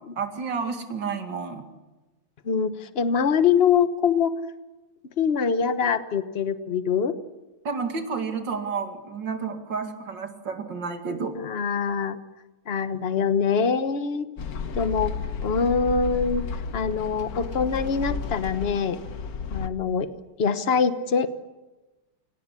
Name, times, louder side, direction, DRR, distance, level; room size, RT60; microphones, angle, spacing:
voice 1, 0.0-1.6 7.6-11.3, right 5 dB, 70° right, 5 dB, 2.9 m, -31 dB
voice 2, 2.4-4.3 5.2-7.1 11.4-12.2 12.7-14.3 14.7-15.1 15.4-16.5 16.7-19.0 19.5-20.1 20.4-21.3, left 6 dB, 35° left, 11 dB, 1.2 m, -24 dB
sound 1, 14.4-19.7, left 5 dB, 55° left, 1.5 m, -32 dB
26.0 x 18.0 x 9.9 m, 1.1 s
omnidirectional pair, 2.1 m